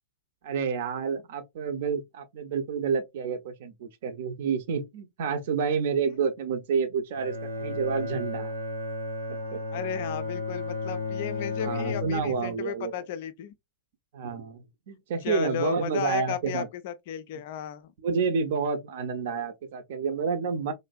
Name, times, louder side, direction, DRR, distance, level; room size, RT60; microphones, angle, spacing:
voice 1, 0.4-8.5 9.3-9.6 11.6-12.9 14.1-16.7 18.0-20.7, right 5 dB, 50° right, 0.6 m, -29 dB
Bowed string instrument, 7.1-12.6, left 3 dB, 85° right, 1.0 m, -33 dB
voice 2, 9.7-13.5 15.2-17.9, left 9 dB, 50° left, 0.4 m, -34 dB
3.1 x 2.5 x 2.2 m
figure-of-eight pair, 95°, 0 cm